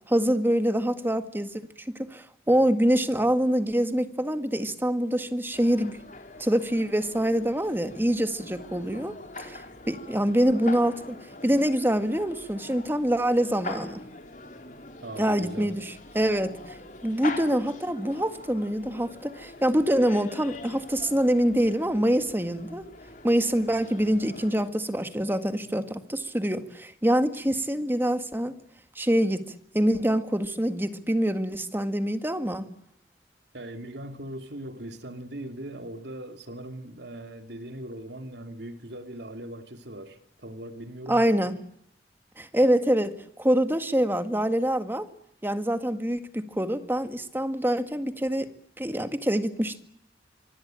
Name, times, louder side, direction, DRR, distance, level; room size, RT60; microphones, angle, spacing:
voice 1, 0.1-6.0 6.4-14.0 15.2-16.8 17.0-22.9 23.2-28.5 29.0-29.4 29.7-32.7 41.1-41.6 42.4-45.1 45.4-48.5 48.8-49.8, equal, 10° right, 1.8 m, -25 dB
sound 1, 5.5-24.7, left 2 dB, 45° left, 3.7 m, -43 dB
voice 2, 15.0-15.8 33.5-41.5, right 1 dB, 75° right, 2.7 m, -40 dB
25.0 x 23.5 x 9.0 m
head